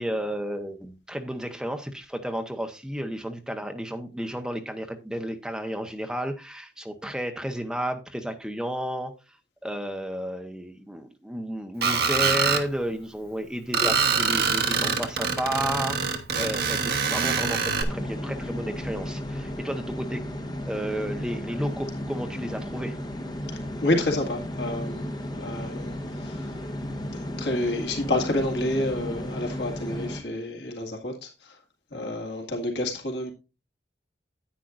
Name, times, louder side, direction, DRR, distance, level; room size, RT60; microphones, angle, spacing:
voice 1, 0.0-9.1 9.6-16.0 16.4-20.2 20.6-23.0, equal, 5° right, 0.9 m, -32 dB
Screech, 11.8-12.6 13.7-17.8, right 5 dB, 55° right, 1.2 m, -24 dB
sound 1, 17.8-30.2, left 1 dB, 20° left, 1.1 m, -34 dB
voice 2, 23.5-25.0 25.4-26.6 27.4-31.6 31.9-33.3, left 1 dB, 65° left, 2.1 m, -29 dB
10.0 x 9.2 x 2.5 m
head